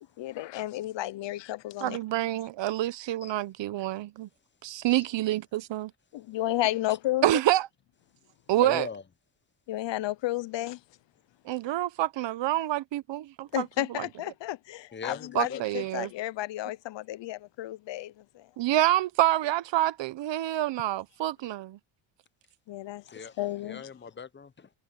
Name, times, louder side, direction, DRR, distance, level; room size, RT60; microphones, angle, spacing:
voice 1, 0.2-2.0 6.1-7.3 9.7-10.8 13.5-18.5 22.7-23.0 23.4-23.9, left 15 dB, 65° left, 0.8 m, -32 dB
voice 2, 1.8-4.3 4.6-5.9 7.2-7.7 8.5-8.9 11.4-13.7 15.3-16.1 18.6-21.8, right 14 dB, 65° right, 1.0 m, -27 dB
voice 3, 8.6-9.0 14.9-15.8 23.1-24.7, left 6 dB, 25° left, 0.8 m, -40 dB
cardioid pair, 95°, 47 cm